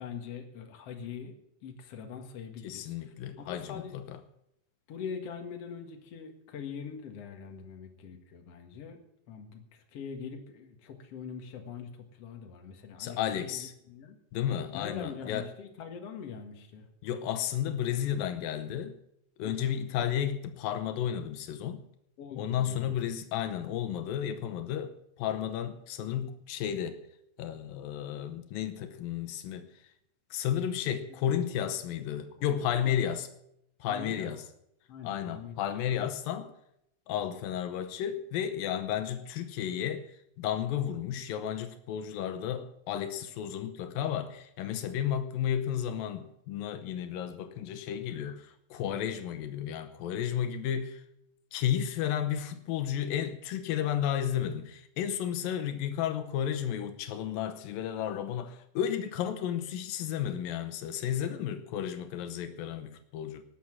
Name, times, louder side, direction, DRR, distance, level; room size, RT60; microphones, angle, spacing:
voice 1, 0.0-1.3 1.6-4.0 4.9-9.0 9.3-13.2 13.5-14.2 14.7-16.9 19.4-19.8 22.2-22.9 32.4-32.7 32.9-33.1 33.9-34.3 34.9-35.6, left 6 dB, 50° left, 2.4 m, -43 dB
voice 2, 2.6-4.2 13.0-13.7 14.3-15.5 17.0-18.9 19.4-21.8 22.4-27.0 27.4-29.7 30.3-33.3 33.8-34.4 35.0-36.5 37.1-51.0 51.5-63.4, left 10 dB, 85° left, 2.7 m, -33 dB
19.0 x 7.3 x 7.4 m
omnidirectional pair, 4.0 m